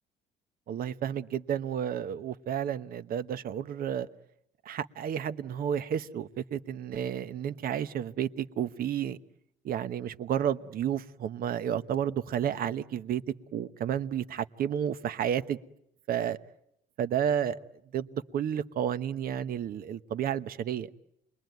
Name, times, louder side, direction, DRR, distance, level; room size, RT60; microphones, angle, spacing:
voice 1, 0.7-4.1 4.6-9.2 9.6-13.2 13.5-15.6 16.1-16.4 17.0-17.6 17.9-20.9, right 9 dB, 60° right, 1.1 m, -31 dB
28.5 x 22.0 x 9.4 m
cardioid pair, 110°, 17 cm